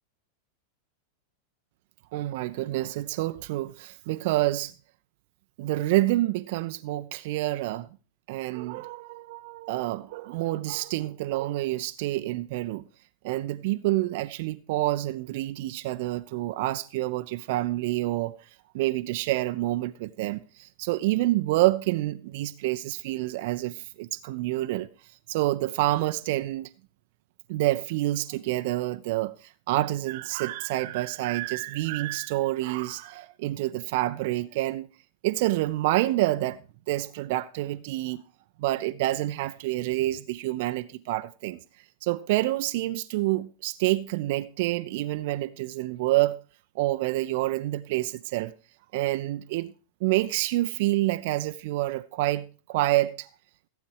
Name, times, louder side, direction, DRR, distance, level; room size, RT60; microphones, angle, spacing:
voice 1, 2.1-4.7 5.6-7.9 8.3-12.8 13.2-18.3 18.7-24.9 25.3-26.7 27.5-34.9 35.2-36.6 36.9-38.2 38.6-41.6 42.0-46.4 46.8-48.5 48.9-49.7 50.0-53.3, right 17 dB, 50° right, 0.5 m, -28 dB
15.5 x 8.3 x 4.7 m
figure-of-eight pair, 90°, 0 cm